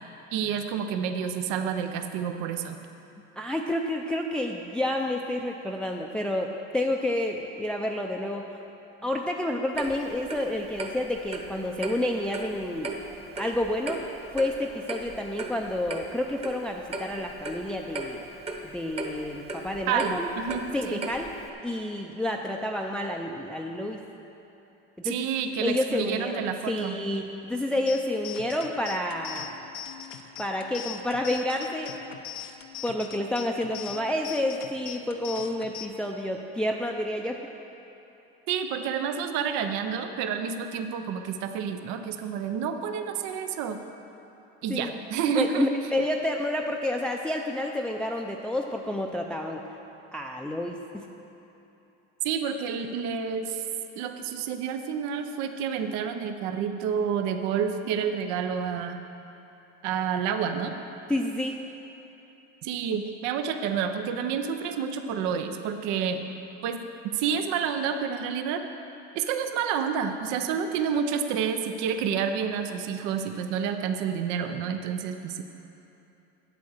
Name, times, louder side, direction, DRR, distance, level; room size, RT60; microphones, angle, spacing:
voice 1, 0.3-2.8 19.9-21.0 25.0-27.0 38.5-43.8 44.6-45.7 52.2-53.6 54.0-59.0 59.8-60.7 62.6-66.3 66.6-68.6 69.1-75.4, right 7 dB, 70° right, 7 dB, 0.7 m, -29 dB
voice 2, 3.4-8.6 9.0-13.0 13.3-14.0 14.3-18.2 18.6-20.3 20.7-21.3 21.6-24.0 25.0-25.3 25.6-29.5 30.4-31.9 32.8-37.4 44.7-44.9 45.4-49.6 50.1-51.1 61.1-61.5, left 1 dB, 5° left, 1 dB, 0.4 m, -29 dB
Clock, 9.8-21.5, right 2 dB, 20° right, 1.0 m, -37 dB
sound 1, 27.9-35.9, left 10 dB, 90° left, 0.8 m, -42 dB
8.4 x 8.3 x 6.5 m, 3.0 s
cardioid pair, 115°, 30 cm